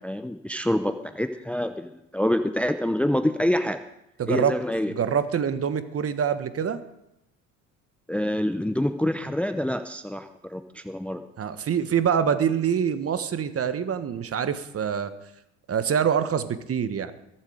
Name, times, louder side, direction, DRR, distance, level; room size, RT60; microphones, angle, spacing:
voice 1, 0.0-3.8 4.3-4.9 8.1-11.2, left 1 dB, 5° left, 9 dB, 0.7 m, -26 dB
voice 2, 4.2-4.6 4.9-6.8 11.4-15.1 15.7-17.1, right 8 dB, 35° right, 12 dB, 1.3 m, -25 dB
22.0 x 7.6 x 5.1 m, 0.84 s
hypercardioid pair, 70°, 38 cm